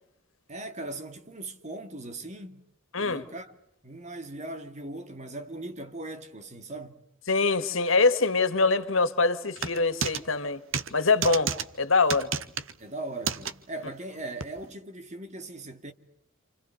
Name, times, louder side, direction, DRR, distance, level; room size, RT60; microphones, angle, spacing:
voice 1, 0.5-2.6 3.0-3.5 3.8-7.0 12.8-15.9, right 2 dB, 35° right, 2.4 m, -39 dB
voice 2, 2.9-3.3 7.3-10.6 10.9-12.3, left 3 dB, 85° left, 2.0 m, -24 dB
sound 1, 9.6-10.2 10.7-10.9 11.2-11.6 12.1-12.7 13.2-13.5 14.4-14.5, right 6 dB, 85° right, 1.3 m, -30 dB
28.5 x 28.5 x 6.7 m
head